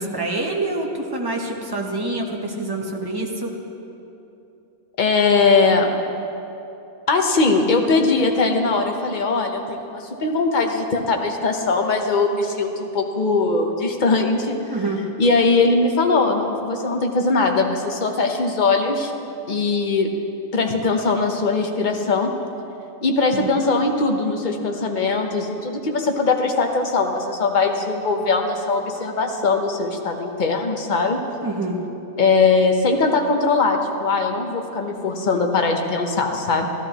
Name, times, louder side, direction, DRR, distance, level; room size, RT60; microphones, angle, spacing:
voice 1, 0.0-3.5 14.7-15.0 23.3-23.5 31.4-31.8, right 2 dB, 20° right, 0 dB, 0.7 m, -26 dB
voice 2, 5.0-5.9 7.1-14.6 15.2-19.1 19.5-20.1 20.5-22.3 23.0-31.2 32.2-36.7, left 3 dB, 40° left, 3 dB, 0.8 m, -20 dB
14.0 x 12.5 x 3.0 m, 2.8 s
omnidirectional pair, 1.6 m